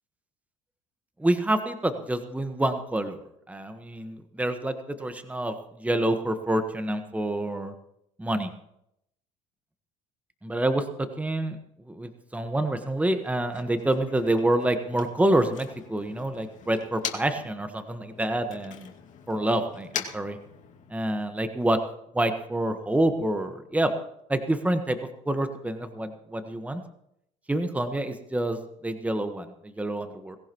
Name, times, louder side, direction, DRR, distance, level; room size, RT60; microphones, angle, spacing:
voice 1, 1.2-3.2 3.5-7.7 8.2-8.5 10.4-11.6 11.9-18.9 19.3-20.4 20.9-21.8 22.1-23.9 24.3-25.0 25.3-26.8 27.5-30.4, right 1 dB, 10° right, 8 dB, 1.4 m, -27 dB
Motor vehicle (road), 13.1-17.5 17.8-21.1, left 8 dB, 50° left, 2.3 m, -41 dB
19.0 x 16.5 x 3.1 m, 0.78 s
hypercardioid pair, 70°, 16 cm